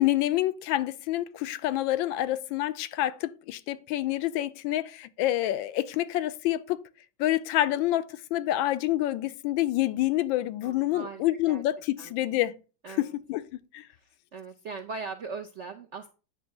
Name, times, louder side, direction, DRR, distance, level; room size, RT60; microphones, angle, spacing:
voice 1, 0.0-6.8 7.2-12.6 12.9-13.9, left 14 dB, 90° left, 1.3 m, -27 dB
voice 2, 10.6-11.6 12.0-12.1 12.8-13.1 13.9-16.1, right 4 dB, 70° right, 0.6 m, -40 dB
9.1 x 3.4 x 6.4 m
omnidirectional pair, 2.1 m